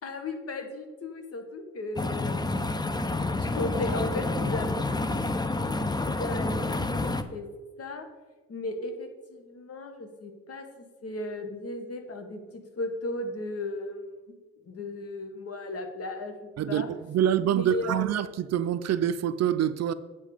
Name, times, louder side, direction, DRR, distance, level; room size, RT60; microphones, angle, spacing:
voice 1, 0.0-2.5 3.4-5.2 5.6-6.6 7.0-7.5 7.8-8.1 8.5-14.0 14.6-16.9 17.4-18.0, left 2 dB, 50° left, 1.7 m, -36 dB
sound 1, 2.0-7.2, left 2 dB, 15° left, 0.7 m, -29 dB
voice 2, 16.6-19.9, right 10 dB, 60° right, 0.6 m, -26 dB
8.6 x 7.3 x 5.1 m
cardioid pair, 90°, 30 cm